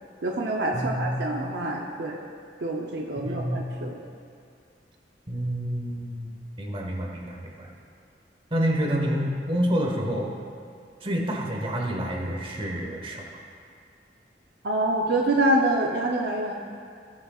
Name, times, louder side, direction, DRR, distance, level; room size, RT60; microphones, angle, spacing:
voice 1, 0.2-2.2 2.6-4.0 14.6-16.5, right 1 dB, 65° right, -1 dB, 0.7 m, -26 dB
voice 2, 0.7-1.1 3.1-3.6 5.3-6.3 6.6-7.7 8.5-10.3 11.0-13.2, equal, 30° right, -1 dB, 1.3 m, -28 dB
17.5 x 6.5 x 2.4 m, 2.3 s
head